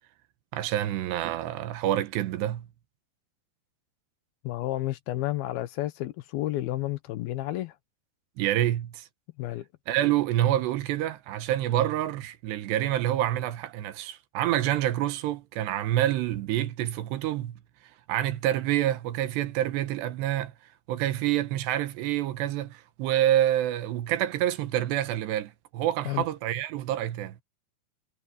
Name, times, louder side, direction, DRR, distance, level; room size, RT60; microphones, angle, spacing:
voice 1, 0.5-2.7 8.4-9.1 9.9-17.6 18.1-20.5 20.9-27.4, right 13 dB, 85° right, 3.4 m, -27 dB
voice 2, 4.4-7.8 9.4-9.7 26.1-26.2, left 15 dB, 75° left, 2.5 m, -31 dB
omnidirectional pair, 4.8 m